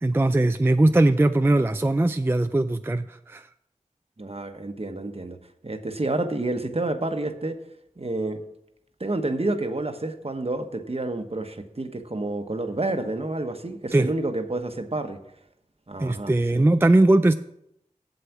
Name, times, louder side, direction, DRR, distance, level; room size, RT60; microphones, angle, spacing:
voice 1, 0.0-3.5 13.9-14.1 16.0-17.3, right 2 dB, 15° right, 9 dB, 0.4 m, -20 dB
voice 2, 4.2-5.4 5.6-7.6 8.0-8.4 9.0-15.2 15.9-16.6, right 2 dB, 45° right, 7 dB, 1.0 m, -29 dB
7.9 x 7.6 x 5.9 m, 0.78 s
wide cardioid pair, 40°, 14 cm